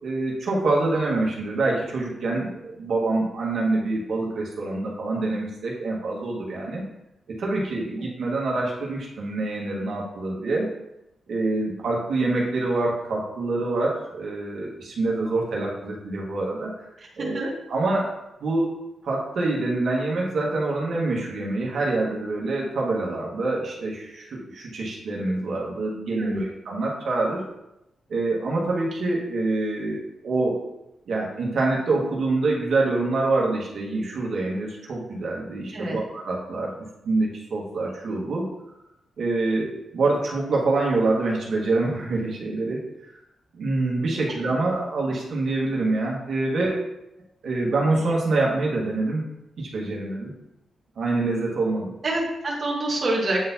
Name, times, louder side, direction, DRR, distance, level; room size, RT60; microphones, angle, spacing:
voice 1, 0.0-6.8 7.3-10.7 11.3-16.7 17.2-18.1 18.4-18.7 19.0-27.4 28.1-30.6 31.1-36.7 37.0-38.5 39.2-42.8 43.5-46.9 47.4-49.2 49.6-50.3 51.0-51.9, right 2 dB, 65° right, -3 dB, 1.5 m, -26 dB
voice 2, 52.0-53.4, right 2 dB, 40° right, -5 dB, 1.2 m, -26 dB
8.6 x 3.9 x 2.8 m, 0.87 s
wide cardioid pair, 150°, 0 cm